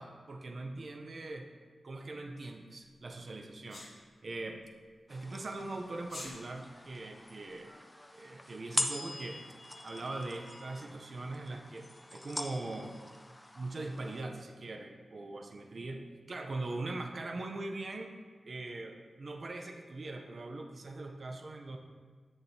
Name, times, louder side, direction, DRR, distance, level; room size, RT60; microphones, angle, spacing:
voice 1, 0.0-1.5 1.8-3.9 4.2-4.6 5.1-7.8 8.1-9.4 9.8-13.0 13.5-16.0 16.3-18.1 18.4-21.8, right 2 dB, 40° right, 3 dB, 0.5 m, -41 dB
Sneeze, 3.7-3.9 6.0-6.3, left 2 dB, 70° left, 2.0 m, -44 dB
sound 1, 5.1-14.2, left 1 dB, 10° left, 0.3 m, -42 dB
8.1 x 7.0 x 2.7 m, 1.5 s
wide cardioid pair, 165°, 0 cm